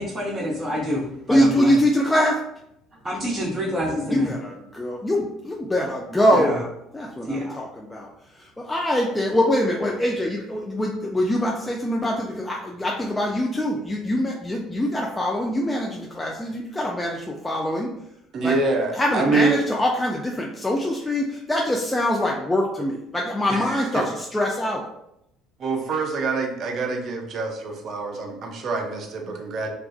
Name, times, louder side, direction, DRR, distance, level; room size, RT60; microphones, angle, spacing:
voice 1, 0.0-1.7 3.0-4.3 6.3-6.6 7.2-7.5, equal, 20° right, -9 dB, 0.8 m, -26 dB
voice 2, 1.3-2.4 4.1-6.6 6.9-8.1 8.4-17.9 18.4-18.5 19.0-24.8, equal, 15° left, -1 dB, 0.3 m, -24 dB
voice 3, 18.3-19.6 23.5-24.1 25.6-29.7, right 3 dB, 50° right, 2 dB, 0.5 m, -25 dB
2.3 x 2.3 x 2.3 m, 0.78 s
hypercardioid pair, 60°, 0 cm